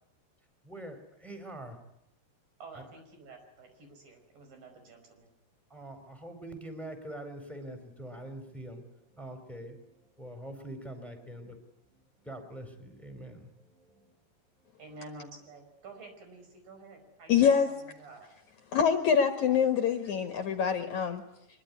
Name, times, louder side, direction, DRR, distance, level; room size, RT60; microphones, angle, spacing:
voice 1, 0.6-1.8 2.7-2.9 5.7-8.8 9.1-9.8 10.2-11.6 11.9-14.1, right 1 dB, ahead, 7 dB, 4.0 m, -44 dB
voice 2, 2.6-5.3 14.8-18.3, right 3 dB, 60° right, 5 dB, 7.1 m, -50 dB
voice 3, 17.3-17.7 18.7-21.2, left 7 dB, 60° left, 7 dB, 2.5 m, -25 dB
24.5 x 23.0 x 9.7 m, 0.78 s
omnidirectional pair, 4.6 m